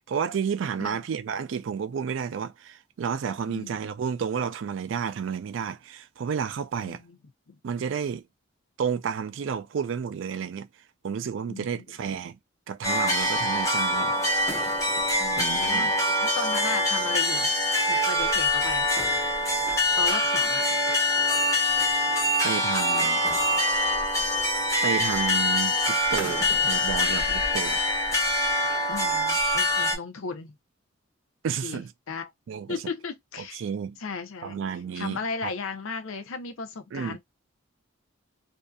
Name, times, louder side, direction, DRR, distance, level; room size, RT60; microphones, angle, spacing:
voice 1, 0.1-7.0 7.6-8.2 8.8-10.7 11.0-12.4 12.7-14.2 15.4-15.9 22.4-23.2 24.8-27.8 31.4-31.9 32.5-32.8 33.4-34.0 34.4-35.5 36.9-37.2, right 7 dB, 65° right, 0.3 m, -31 dB
voice 2, 6.8-7.2 11.5-11.8 15.2-15.9 16.2-17.5 17.8-18.9 20.0-20.6 28.9-30.6 31.6-32.3 32.7-33.6 34.0-34.6 34.9-37.2, left 5 dB, 90° left, 0.6 m, -35 dB
sound 1, 12.8-30.0, left 1 dB, 15° left, 0.7 m, -24 dB
2.6 x 2.4 x 2.2 m
head